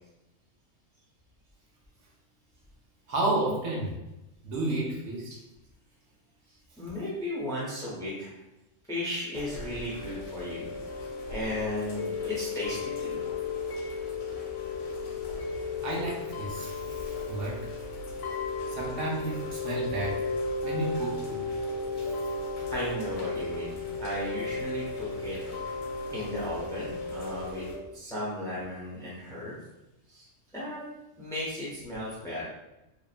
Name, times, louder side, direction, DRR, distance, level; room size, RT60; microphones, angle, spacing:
voice 1, 3.1-3.9 4.4-5.3 15.8-17.7 18.3-18.4 18.7-20.2 20.6-21.3 21.8-21.9, right 2 dB, 75° right, -2 dB, 1.0 m, -32 dB
voice 2, 6.8-8.3 8.9-10.7 11.3-13.2 22.7-25.4 26.1-29.6 30.1-30.3 30.5-30.8 31.2-32.4, left 1 dB, 5° left, -7 dB, 0.5 m, -35 dB
Chime / Rain, 9.3-27.7, left 3 dB, 85° left, 1.0 m, -34 dB
2.8 x 2.1 x 2.4 m, 0.94 s
omnidirectional pair, 1.4 m